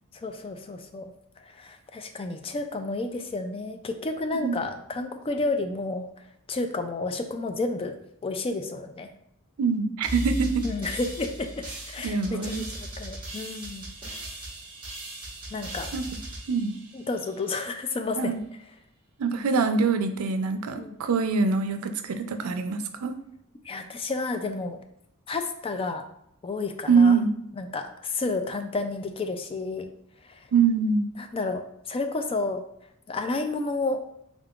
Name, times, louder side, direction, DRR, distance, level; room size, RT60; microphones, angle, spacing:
voice 1, 0.2-1.1 1.6-6.1 6.5-7.9 8.2-9.1 10.6-13.9 15.5-15.9 16.9-18.3 20.8-20.9 23.7-24.8 25.3-26.0 26.4-27.2 27.5-29.9 31.3-32.6 33.1-34.0, left 3 dB, 25° left, 7 dB, 0.3 m, -31 dB
voice 2, 9.6-10.7 12.0-12.6 15.9-16.1 16.5-16.7 18.2-18.4 19.2-23.2 26.9-27.3 30.5-31.1, right 5 dB, 85° right, 8 dB, 0.4 m, -24 dB
sound 1, 10.0-17.5, right 1 dB, 25° right, 1.3 m, -37 dB
3.6 x 3.6 x 2.4 m, 0.75 s
head